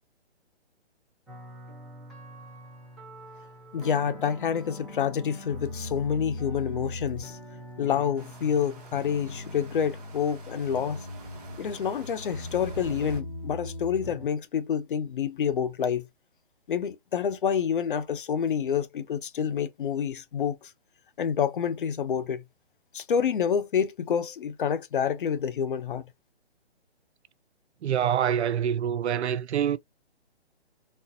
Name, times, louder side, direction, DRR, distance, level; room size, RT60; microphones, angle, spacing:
sound 1, 1.3-14.3, left 1 dB, ahead, 1.0 m, -41 dB
voice 1, 3.7-7.4 7.8-11.1 11.6-16.1 16.7-20.7 21.2-22.4 22.9-26.0, left 7 dB, 50° left, 0.6 m, -28 dB
sound 2, 8.2-13.2, right 4 dB, 35° right, 1.1 m, -47 dB
voice 2, 27.8-29.8, right 9 dB, 75° right, 0.5 m, -26 dB
4.1 x 2.1 x 2.5 m
hypercardioid pair, 155°, 33 cm